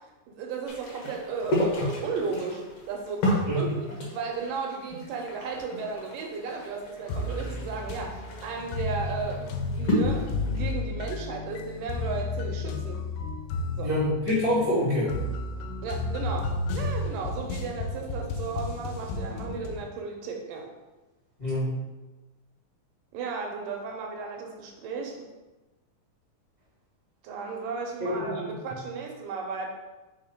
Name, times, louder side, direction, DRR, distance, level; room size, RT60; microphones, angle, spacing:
voice 1, 0.3-13.1 13.8-13.9 15.8-20.7 23.1-25.3 27.2-29.7, right 5 dB, 80° right, 1 dB, 2.4 m, -35 dB
sound 1, 0.7-10.7, left 1 dB, 55° left, 1.8 m, -32 dB
sound 2, 7.1-19.9, left 3 dB, 80° left, 2.1 m, -32 dB
voice 2, 13.8-15.1 21.4-21.7 28.0-28.5, left 1 dB, 15° left, -11 dB, 1.4 m, -26 dB
4.7 x 4.5 x 5.0 m, 1.1 s
omnidirectional pair, 4.0 m